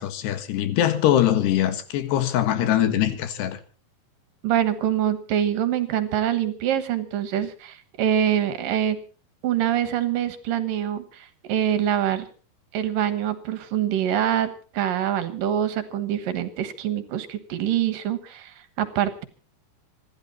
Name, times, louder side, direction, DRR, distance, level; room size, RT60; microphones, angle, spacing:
voice 1, 0.0-3.6, left 11 dB, 85° left, 3.8 m, -22 dB
voice 2, 4.4-9.0 9.4-12.3 12.7-19.2, right 10 dB, 65° right, 2.7 m, -25 dB
26.0 x 12.0 x 4.1 m
omnidirectional pair, 4.7 m